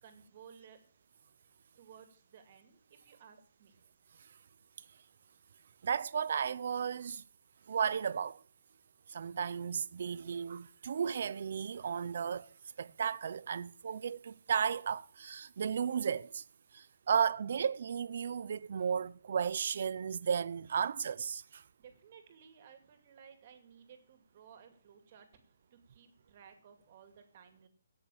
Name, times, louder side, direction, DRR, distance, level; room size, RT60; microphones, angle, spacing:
voice 1, 0.0-0.8 1.8-3.7 21.8-25.3 25.7-27.7, right 7 dB, 30° right, 2.4 m, -57 dB
voice 2, 5.8-7.2 7.7-8.4 9.1-12.5 12.8-16.4 16.7-21.6, right 7 dB, 50° right, 0.6 m, -34 dB
17.0 x 6.7 x 7.2 m
hypercardioid pair, 175°, 0 cm